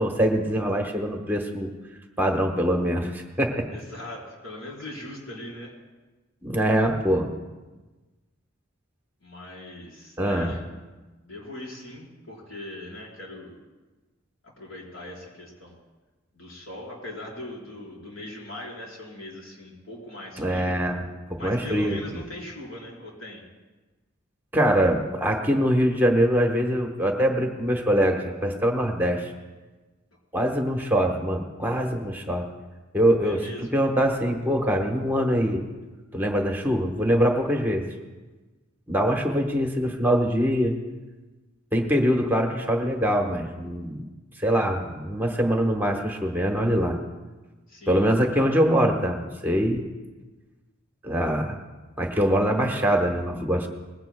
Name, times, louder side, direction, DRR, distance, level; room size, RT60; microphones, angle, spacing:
voice 1, 0.0-1.7 2.2-3.7 6.4-7.3 10.2-10.5 20.4-21.0 21.3-22.0 24.5-29.3 30.3-32.5 32.9-35.6 36.1-37.8 38.9-40.7 41.7-44.0 44.4-47.0 47.9-49.8 51.0-51.5 52.0-53.7, equal, 10° right, 2 dB, 1.1 m, -23 dB
voice 2, 3.7-5.7 9.2-10.6 11.2-13.6 14.4-15.8 16.3-20.7 21.4-23.4 33.2-33.7 47.7-48.0, left 1 dB, 85° left, -4 dB, 4.3 m, -40 dB
20.5 x 16.5 x 2.3 m, 1.2 s
head